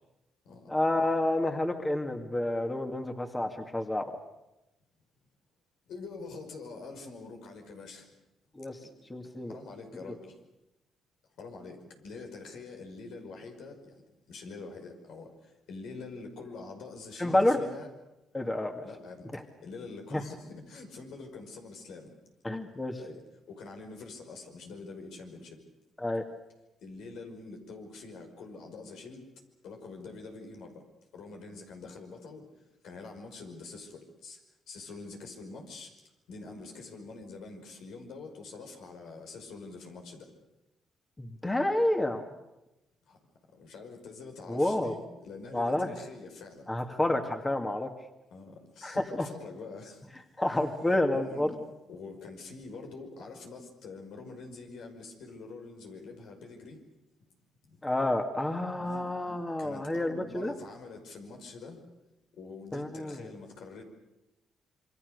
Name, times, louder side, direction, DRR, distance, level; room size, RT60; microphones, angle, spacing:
voice 1, 0.7-4.1 8.6-8.8 9.1-9.5 17.2-17.6 18.3-18.8 19.3-19.4 20.1-20.2 22.4-23.0 26.0-26.2 41.2-42.3 44.5-45.0 45.5-45.9 46.7-47.9 48.8-49.3 50.4-51.5 57.8-60.5 62.7-63.3, left 1 dB, 15° left, 4 dB, 2.3 m, -29 dB
voice 2, 5.9-8.1 8.8-8.9 9.2-10.4 11.4-17.9 18.8-22.2 23.0-23.2 23.5-25.6 26.8-29.3 29.6-30.8 31.1-32.4 32.8-34.4 34.7-35.9 36.3-40.3 43.0-43.2 43.5-46.7 48.3-50.1 51.1-51.6 51.9-56.8 57.7-57.9 58.8-59.1 59.6-61.8 62.3-63.8, left 3 dB, 80° left, 3 dB, 5.4 m, -45 dB
27.5 x 24.0 x 6.7 m, 0.95 s
cardioid pair, 90°, 0 cm